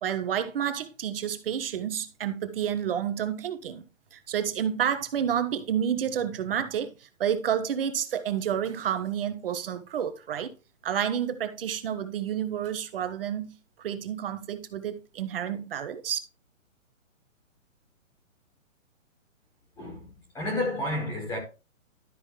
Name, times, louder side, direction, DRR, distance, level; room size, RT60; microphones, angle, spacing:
voice 1, 0.0-3.8 4.1-10.5 10.8-16.2, right 9 dB, 45° right, 1.3 m, -30 dB
voice 2, 19.8-21.4, left 1 dB, 5° left, 1.4 m, -31 dB
12.5 x 5.4 x 3.2 m
hypercardioid pair, 160°, 39 cm